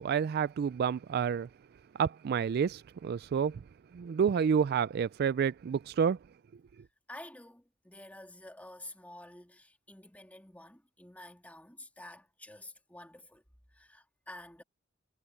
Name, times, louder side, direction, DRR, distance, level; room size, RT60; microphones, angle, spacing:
voice 1, 0.0-1.5 1.9-3.6 3.9-6.2, right 7 dB, 50° right, 0.3 m, -29 dB
voice 2, 7.1-13.4 13.7-14.6, left 1 dB, 10° left, 3.0 m, -50 dB
head